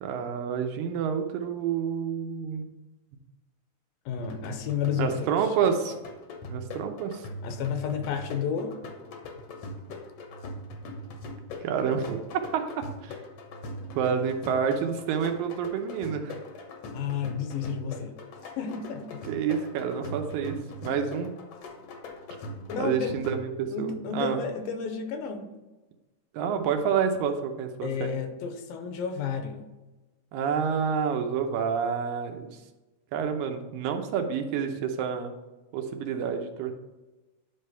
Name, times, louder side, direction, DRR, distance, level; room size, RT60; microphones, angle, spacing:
voice 1, 0.0-2.7 5.0-6.0 6.5-7.2 11.6-12.2 12.5-12.6 13.0-13.1 14.0-16.4 19.3-20.6 20.8-21.3 22.8-24.4 26.3-28.1 30.3-32.5 33.1-35.3 35.7-36.7, right 7 dB, 80° right, 5 dB, 2.4 m, -28 dB
voice 2, 4.1-5.5 7.4-8.8 16.9-18.1 18.6-19.2 22.7-23.2 23.7-25.5 27.8-29.7, left 7 dB, 85° left, 6 dB, 2.5 m, -31 dB
sound 1, 4.2-23.8, left 1 dB, 70° left, 1.5 m, -41 dB
10.0 x 3.4 x 5.5 m, 1.1 s
omnidirectional pair, 4.1 m